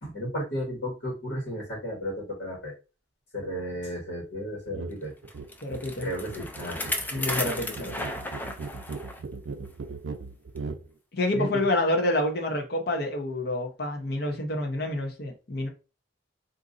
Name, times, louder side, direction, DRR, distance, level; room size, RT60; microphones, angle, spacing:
voice 1, 0.0-2.7 3.3-5.1 6.0-6.9 11.3-11.5, equal, 75° left, -3 dB, 1.4 m, -33 dB
sound 1, 4.7-5.0 5.2-10.9, right 4 dB, 70° right, 0.4 m, -38 dB
Bicycle, 5.3-9.2 9.6-9.7 10.6-10.7, left 1 dB, 10° left, 0.3 m, -34 dB
voice 2, 5.6-6.1 7.1-7.9 11.1-15.7, left 1 dB, 55° left, 3 dB, 0.7 m, -28 dB
3.8 x 2.6 x 2.5 m, 0.31 s
head